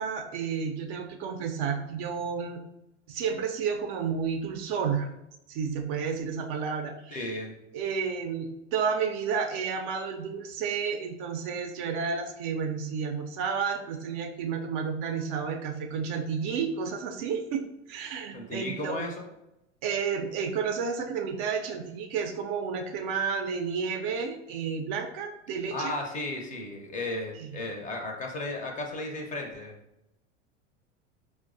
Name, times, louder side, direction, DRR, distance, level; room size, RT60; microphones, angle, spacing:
voice 1, 0.0-2.6 3.1-5.1 5.5-7.3 7.7-17.6 17.9-19.1 19.8-25.9 27.3-27.5, right 6 dB, 45° right, 4 dB, 0.4 m, -31 dB
voice 2, 7.1-7.5 18.3-19.1 25.7-29.7, left 2 dB, 20° left, 2 dB, 0.5 m, -34 dB
4.4 x 2.0 x 2.5 m, 0.91 s
figure-of-eight pair, 85°, 36 cm